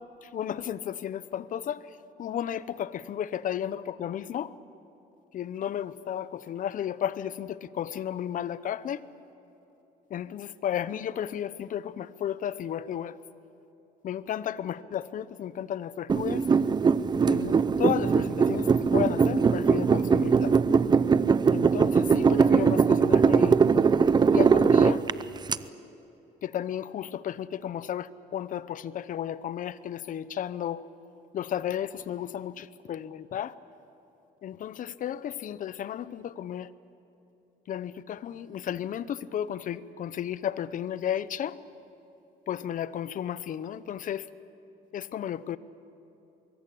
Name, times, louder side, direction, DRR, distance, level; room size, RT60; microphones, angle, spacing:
voice 1, 0.3-1.8 2.2-4.5 5.3-9.0 10.1-13.2 14.0-16.4 17.3-20.5 21.5-23.6 24.3-25.0 26.4-30.8 31.3-33.5 34.4-36.7 37.7-41.6 42.5-44.2 44.9-45.6, left 10 dB, 50° left, 16 dB, 0.8 m, -33 dB
sound 1, 16.1-25.6, right 5 dB, 25° right, 0.6 m, -21 dB
24.5 x 22.5 x 8.5 m, 2.9 s
cardioid pair, 110°, 17 cm